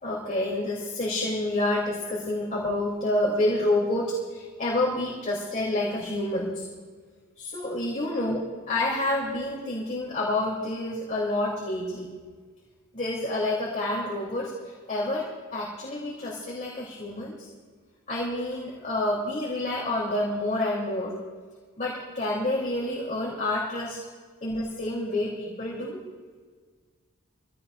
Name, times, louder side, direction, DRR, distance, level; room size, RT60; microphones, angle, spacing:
voice 1, 0.0-6.7 7.4-8.4 8.7-12.1 12.9-17.5 18.1-21.1 21.8-24.0 24.4-26.0, left 1 dB, 35° left, -4 dB, 3.1 m, -28 dB
24.5 x 16.5 x 2.6 m, 1.5 s
head